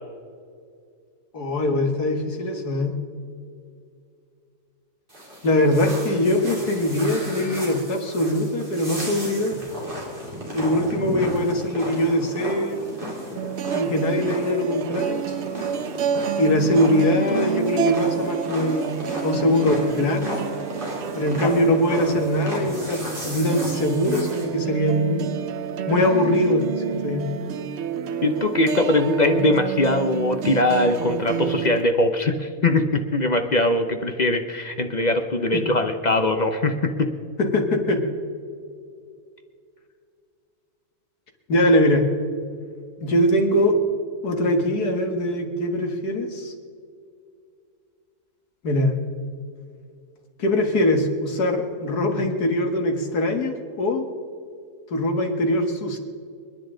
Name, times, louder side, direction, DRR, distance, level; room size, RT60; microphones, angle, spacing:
voice 1, 1.3-2.9 5.4-9.5 10.5-12.8 13.7-15.2 16.4-19.0 19.2-20.4 21.2-25.3 25.9-27.3 35.5-35.6 37.4-38.0 41.5-42.0 43.0-43.7 44.2-46.5 48.6-48.9 50.4-54.1 54.9-56.0, left 1 dB, 75° left, 3 dB, 2.3 m, -22 dB
sound 1, 5.1-24.4, equal, 35° right, 3.9 m, -34 dB
sound 2, 13.3-31.8, right 9 dB, 65° right, 0.7 m, -29 dB
voice 2, 28.2-37.1, left 2 dB, 40° left, 6 dB, 0.7 m, -21 dB
30.0 x 10.0 x 3.9 m, 2.3 s
omnidirectional pair, 1.7 m